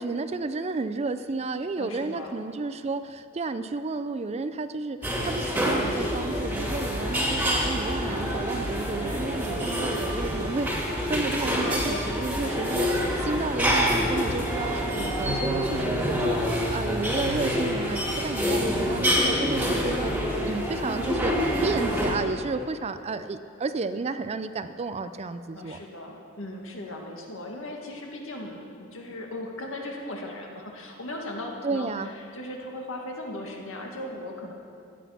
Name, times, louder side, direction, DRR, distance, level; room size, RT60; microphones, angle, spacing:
voice 1, 0.0-12.9 13.2-20.1 20.5-25.8 31.6-32.1, right 3 dB, 30° right, 11 dB, 0.4 m, -32 dB
voice 2, 1.8-2.4 11.9-12.0 12.4-12.6 25.5-34.5, left 1 dB, 70° left, 1 dB, 2.0 m, -38 dB
sound 1, 5.0-22.2, equal, 10° right, 2.2 m, -27 dB
sound 2, 5.7-15.3, equal, 30° left, 2.3 m, -40 dB
15.0 x 10.0 x 5.9 m, 2.4 s
head